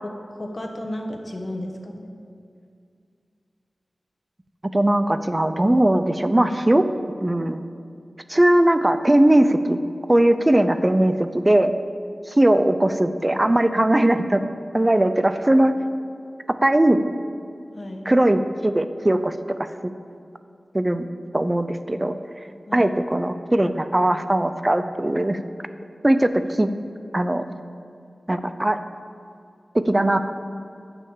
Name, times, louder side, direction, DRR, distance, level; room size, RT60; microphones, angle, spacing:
voice 1, 0.3-2.2 17.7-18.1 22.7-22.9, left 1 dB, 40° left, 2 dB, 1.2 m, -33 dB
voice 2, 4.7-6.9 7.2-7.7 8.3-11.7 12.3-14.4 14.7-15.7 16.6-17.0 18.1-19.9 20.7-21.1 21.3-22.2 22.7-25.4 26.0-26.7 27.1-27.5 28.3-28.8 29.7-30.2, right 1 dB, 25° right, 10 dB, 0.5 m, -19 dB
9.4 x 5.7 x 7.2 m, 2.4 s
wide cardioid pair, 70°, 0 cm